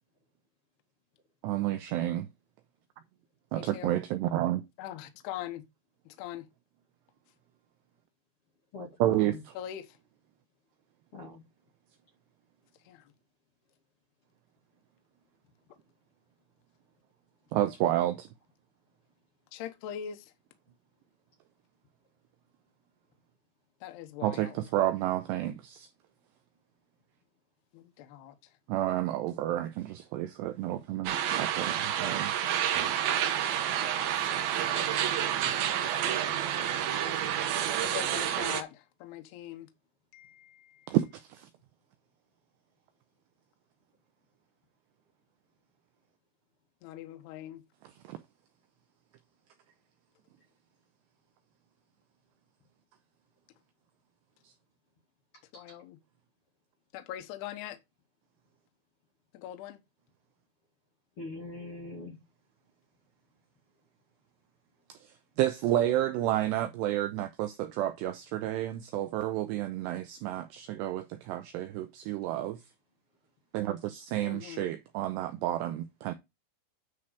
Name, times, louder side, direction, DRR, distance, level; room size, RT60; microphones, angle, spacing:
voice 1, 1.4-2.3 3.5-4.6 9.0-9.5 17.5-18.3 24.2-25.9 28.7-32.5 40.9-41.5 48.0-48.2 64.9-72.6 73.5-76.1, right 13 dB, 90° right, 2.4 m, -30 dB
voice 2, 3.5-4.0 4.8-5.6 6.2-6.5 9.6-9.9 12.9-13.0 19.5-20.3 23.8-24.6 27.7-28.3 34.1-35.6 37.1-39.7 40.1-40.9 46.8-47.6 55.5-56.0 56.9-57.8 59.3-59.8 74.2-74.7, left 11 dB, 70° left, 2.7 m, -42 dB
voice 3, 8.7-9.4 11.1-11.4 55.5-55.6 61.2-62.2, left 2 dB, 55° left, 1.6 m, -42 dB
sound 1, 31.1-38.6, right 10 dB, 75° right, 2.3 m, -29 dB
9.9 x 4.1 x 4.9 m
omnidirectional pair, 5.6 m